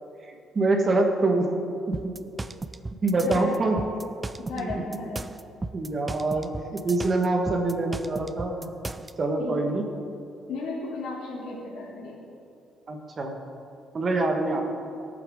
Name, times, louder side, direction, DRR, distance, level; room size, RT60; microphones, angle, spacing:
voice 1, 0.3-1.5 1.9-2.1 3.0-3.8 4.5-4.8 5.7-8.5 9.2-9.9 12.9-13.3 13.9-14.6, right 2 dB, 30° right, 2 dB, 1.4 m, -25 dB
sound 1, 1.9-9.1, right 2 dB, 15° right, 0.3 m, -35 dB
voice 2, 3.2-3.8 4.4-5.3 8.6-8.7 9.4-9.6 10.5-12.2, left 3 dB, 85° left, -3 dB, 2.8 m, -35 dB
18.5 x 9.0 x 3.7 m, 2.5 s
cardioid pair, 145°, 0 cm